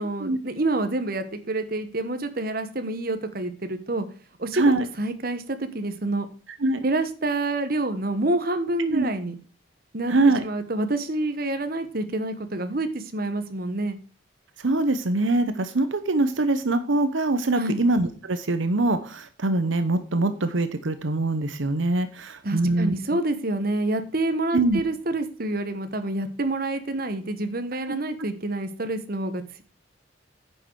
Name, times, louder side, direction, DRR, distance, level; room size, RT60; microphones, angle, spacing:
voice 1, 0.0-4.1 4.4-6.3 6.8-9.4 9.9-10.1 10.4-14.0 17.5-17.8 22.4-29.6, right 2 dB, 50° right, 9 dB, 1.3 m, -27 dB
voice 2, 4.5-4.9 6.6-6.8 8.9-9.1 10.1-10.4 14.6-22.9 24.5-24.8, right 2 dB, 80° right, 10 dB, 0.9 m, -23 dB
9.8 x 6.6 x 4.6 m, 0.39 s
head